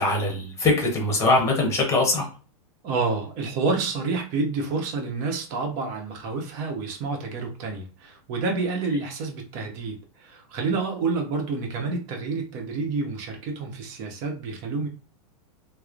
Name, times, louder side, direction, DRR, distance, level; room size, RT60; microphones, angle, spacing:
voice 1, 0.0-2.3, left 2 dB, 15° left, 1 dB, 0.9 m, -22 dB
voice 2, 2.8-14.9, right 4 dB, 40° right, 1 dB, 0.9 m, -29 dB
3.0 x 2.0 x 2.5 m, 0.35 s
hypercardioid pair, 135°, 19 cm